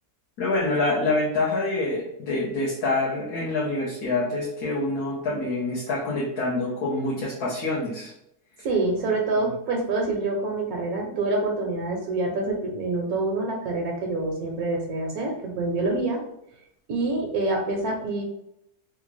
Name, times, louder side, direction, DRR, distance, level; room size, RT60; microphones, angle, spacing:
voice 1, 0.4-8.1 9.4-9.5, left 2 dB, 70° left, -6 dB, 1.3 m, -26 dB
voice 2, 8.6-16.2 16.9-18.2, right 2 dB, 70° right, 0 dB, 1.1 m, -26 dB
3.5 x 2.4 x 3.1 m, 0.80 s
omnidirectional pair, 1.7 m